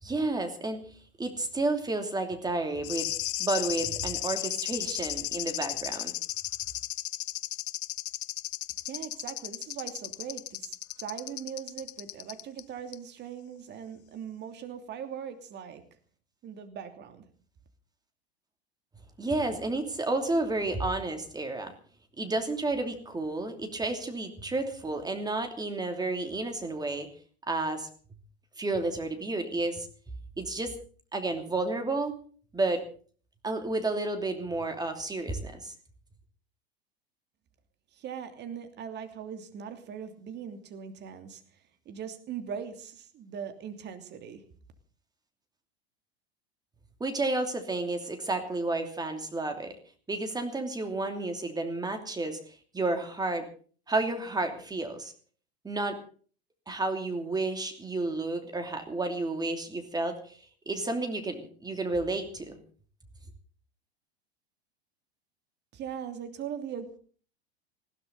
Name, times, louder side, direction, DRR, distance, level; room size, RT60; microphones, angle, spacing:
voice 1, 0.0-0.8 1.2-3.1 3.4-6.1 19.2-21.7 22.2-27.1 27.4-27.9 28.6-29.9 30.4-30.7 31.1-32.2 32.5-32.8 33.4-35.7 47.0-49.7 50.1-52.4 52.7-53.5 53.9-55.1 55.6-56.0 56.7-60.4 60.7-62.6, right 2 dB, 10° right, 6 dB, 2.9 m, -31 dB
sound 1, 2.8-12.6 12.9-13.0, left 17 dB, 55° left, 0.9 m, -35 dB
voice 2, 8.9-15.8 16.4-17.2 37.9-41.4 41.8-44.4 65.7-67.0, right 8 dB, 35° right, 8 dB, 2.9 m, -40 dB
20.5 x 15.5 x 4.0 m, 0.43 s
figure-of-eight pair, 85°, 31 cm